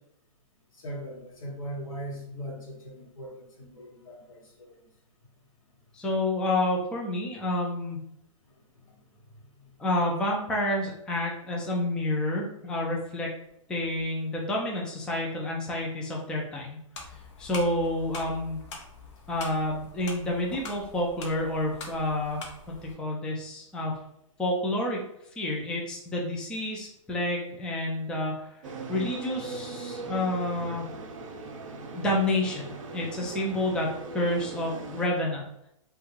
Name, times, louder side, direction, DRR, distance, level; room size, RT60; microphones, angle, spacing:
voice 1, 0.7-4.8 8.6-9.0 9.3-9.7, equal, 80° left, -3 dB, 1.2 m, -40 dB
voice 2, 5.9-8.0 9.8-13.3 13.7-16.8 17.4-18.6 19.3-22.4 22.7-23.9 24.4-25.0 25.4-30.8 31.9-33.9 34.1-35.4, left 1 dB, 5° left, -2 dB, 0.3 m, -29 dB
sound 1, 16.9-23.0, left 3 dB, 60° left, 0.7 m, -43 dB
sound 2, 28.6-35.0, right 3 dB, 70° right, 0.5 m, -39 dB
2.4 x 2.2 x 2.9 m, 0.75 s
hypercardioid pair, 135°, 17 cm